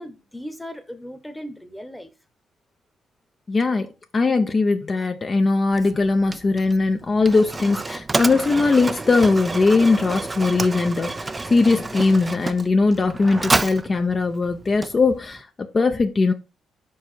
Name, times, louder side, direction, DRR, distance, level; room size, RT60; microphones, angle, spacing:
voice 1, 0.0-2.1, equal, 5° left, 1.1 m, -37 dB
voice 2, 3.5-16.3, left 3 dB, 35° left, 0.7 m, -20 dB
Mechanisms, 5.7-15.4, right 3 dB, 20° right, 0.4 m, -29 dB
5.3 x 4.7 x 4.5 m
cardioid pair, 90°, 0 cm